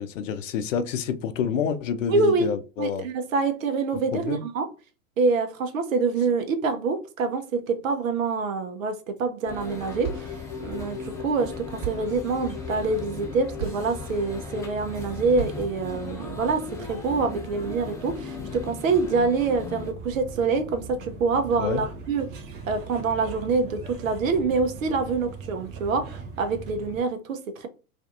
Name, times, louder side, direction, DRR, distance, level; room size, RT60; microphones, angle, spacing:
voice 1, 0.0-3.1 3.9-4.4 21.6-21.8, left 7 dB, 60° left, 0.5 m, -28 dB
voice 2, 2.1-2.5 2.8-4.7 5.2-10.3 10.6-22.4 22.7-27.7, right 4 dB, 65° right, 0.7 m, -26 dB
sound 1, 9.2-9.7 10.0-16.1, right 10 dB, 45° right, 1.0 m, -39 dB
sound 2, 9.5-19.9, left 4 dB, 5° left, 0.8 m, -36 dB
sound 3, 19.7-27.0, right 4 dB, 25° right, 0.4 m, -40 dB
2.5 x 2.3 x 2.5 m
figure-of-eight pair, 95°, 43 cm